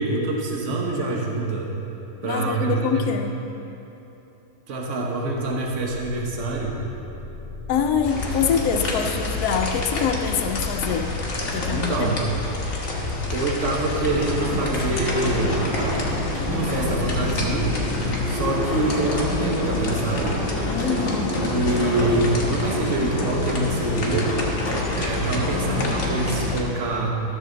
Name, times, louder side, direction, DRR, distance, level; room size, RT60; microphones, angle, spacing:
voice 1, 0.0-1.7 2.2-3.0 4.7-6.7 11.7-12.2 13.3-15.7 16.5-17.7 18.3-20.4 21.4-24.3 24.9-27.2, right 2 dB, 50° right, -1 dB, 1.4 m, -25 dB
voice 2, 2.2-3.3 7.7-11.2 11.5-12.1 20.7-21.4, left 6 dB, 75° left, 5 dB, 1.1 m, -25 dB
sound 1, 5.7-18.2, left 1 dB, 15° left, 1.9 m, -36 dB
sound 2, 8.0-26.6, left 3 dB, 50° left, 1.4 m, -29 dB
sound 3, 14.1-26.6, left 1 dB, 30° left, 2.0 m, -28 dB
13.5 x 6.9 x 3.9 m, 3.0 s
omnidirectional pair, 1.7 m